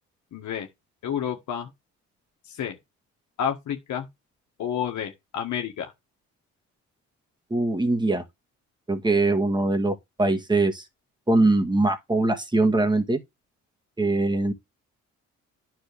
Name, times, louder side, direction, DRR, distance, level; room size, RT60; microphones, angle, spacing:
voice 1, 0.3-0.7 1.0-1.7 2.5-2.8 3.4-4.1 4.6-5.9, left 9 dB, 70° left, 1.7 m, -30 dB
voice 2, 7.5-8.2 8.9-10.8 11.3-13.2 14.0-14.5, right 2 dB, 15° right, 2.0 m, -22 dB
9.5 x 6.2 x 3.5 m
cardioid pair, 90°, 30 cm